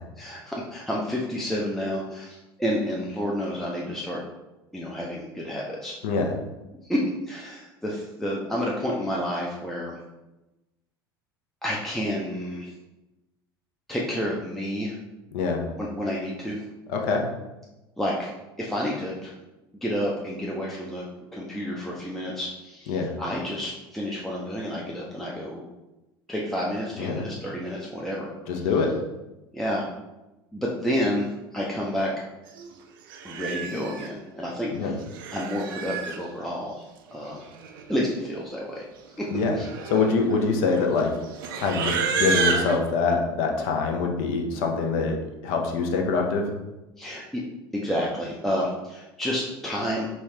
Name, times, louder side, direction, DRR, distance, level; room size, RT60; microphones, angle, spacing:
voice 1, 0.2-4.2 4.7-6.0 6.9-10.0 11.6-12.7 13.9-15.0 15.8-16.6 18.0-18.3 18.6-19.3 19.7-21.1 21.3-25.6 26.3-28.3 28.5-28.7 29.5-29.8 30.5-32.1 33.2-35.0 35.3-37.5 37.9-38.8 39.2-39.3 39.6-39.7 47.0-47.4 47.7-50.1, equal, ahead, -4 dB, 0.5 m, -30 dB
voice 2, 28.5-28.9 34.7-34.9 39.3-39.5 39.9-41.1 41.6-45.2 45.4-46.4, left 4 dB, 55° left, 2 dB, 0.6 m, -24 dB
Livestock farm animals working animals, 32.6-32.7 33.1-34.1 34.9-36.2 37.3-37.4 37.6-38.0 38.3-38.5 39.2-42.8, right 5 dB, 60° right, 0.5 m, -30 dB
4.1 x 2.4 x 3.2 m, 1.0 s
figure-of-eight pair, 70°, 13 cm